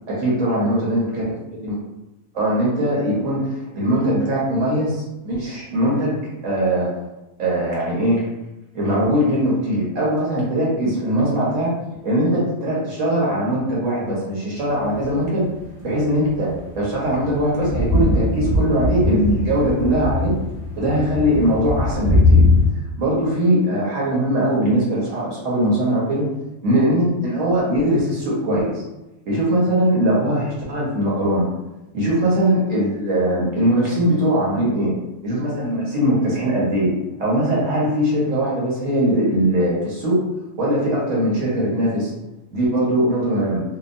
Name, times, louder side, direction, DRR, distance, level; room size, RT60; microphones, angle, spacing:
voice 1, 0.1-1.2 1.6-1.8 2.3-6.2 6.4-6.9 7.4-8.3 8.7-11.7 12.0-15.5 15.8-20.3 20.8-22.5 23.0-26.3 26.6-28.8 29.3-31.5 31.9-34.9 35.2-36.9 37.2-40.2 40.6-42.1 42.5-43.6, right 1 dB, 65° right, -6 dB, 1.2 m, -20 dB
sound 1, 14.8-15.3 16.2-22.7, left 2 dB, 20° left, 0.9 m, -20 dB
2.8 x 2.3 x 2.5 m, 0.98 s
omnidirectional pair, 1.5 m